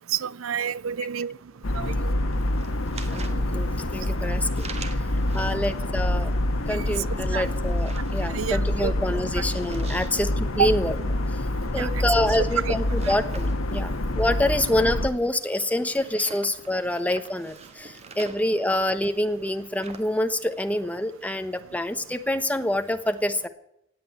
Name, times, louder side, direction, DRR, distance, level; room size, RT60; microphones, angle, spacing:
voice 1, 0.1-1.4 1.7-2.2 7.3-7.5 8.3-8.9 9.4-9.5 10.6-10.7 11.7-11.9 12.6-12.8, right 8 dB, 80° right, 0.5 m, -28 dB
sound 1, 1.6-15.1, left 1 dB, 90° left, 1.2 m, -27 dB
sound 2, 2.1-20.0, right 4 dB, 30° right, 1.5 m, -46 dB
voice 2, 3.1-4.7 5.3-6.3 6.7-10.9 11.7-23.5, left 1 dB, 5° left, 1.1 m, -26 dB
17.5 x 8.6 x 8.4 m
head